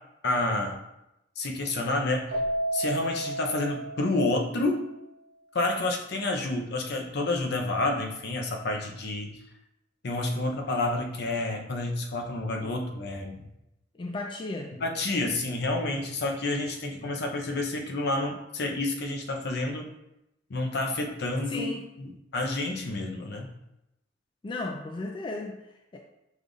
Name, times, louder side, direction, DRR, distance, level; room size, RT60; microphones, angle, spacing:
voice 1, 0.2-0.8 1.4-2.3 2.7-4.8 5.5-9.3 10.0-13.4 14.8-19.9 20.5-21.7 22.0-23.5, left 2 dB, 60° left, 2 dB, 0.6 m, -29 dB
Keyboard (musical), 2.3-4.8, right 1 dB, 60° right, 1.2 m, -32 dB
voice 2, 13.9-14.7 21.5-21.9 24.4-26.0, left 2 dB, 25° left, 2 dB, 0.3 m, -35 dB
5.1 x 2.4 x 3.8 m, 0.87 s
head